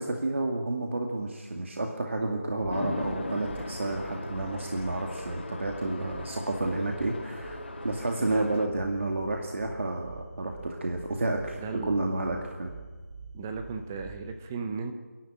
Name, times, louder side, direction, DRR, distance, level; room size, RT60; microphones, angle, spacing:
voice 1, 0.0-7.6 7.8-12.7, right 2 dB, 55° right, 2 dB, 2.2 m, -30 dB
sound 1, 2.6-14.4, right 3 dB, 35° right, 2.2 m, -46 dB
Chatter / Traffic noise roadway noise / Train, 2.7-8.7, left 2 dB, 45° left, 2.8 m, -38 dB
voice 2, 11.5-11.9 13.3-14.9, right 5 dB, 10° right, 7 dB, 0.6 m, -36 dB
30.0 x 11.0 x 8.9 m, 1.4 s
figure-of-eight pair, 175°, 8 cm